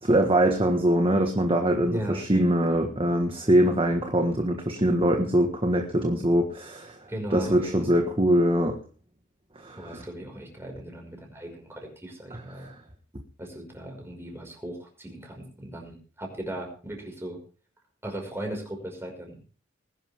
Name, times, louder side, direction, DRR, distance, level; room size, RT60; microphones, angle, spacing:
voice 1, 0.0-7.0 7.3-8.8 9.5-10.0 12.3-12.7, right 1 dB, 30° right, 4 dB, 1.5 m, -23 dB
voice 2, 1.9-2.2 7.1-7.9 9.8-12.7 13.4-17.4 18.0-19.4, right 1 dB, 15° right, 2 dB, 5.5 m, -37 dB
20.5 x 11.5 x 3.6 m, 0.37 s
head